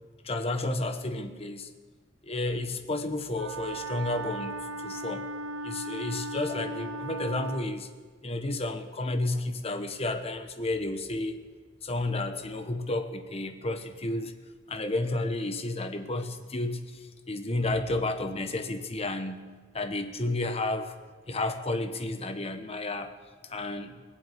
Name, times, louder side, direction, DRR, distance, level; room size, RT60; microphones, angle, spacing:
voice 1, 0.2-1.7 2.2-5.3 5.6-7.9 8.2-11.4 11.8-14.3 14.7-19.5 19.7-21.0 21.3-23.1 23.4-23.9, left 2 dB, 30° left, 7 dB, 1.1 m, -31 dB
Wind instrument woodwind instrument, 3.3-7.7, right 1 dB, 85° right, 0.9 m, -37 dB
19.5 x 7.6 x 8.3 m, 1.5 s
head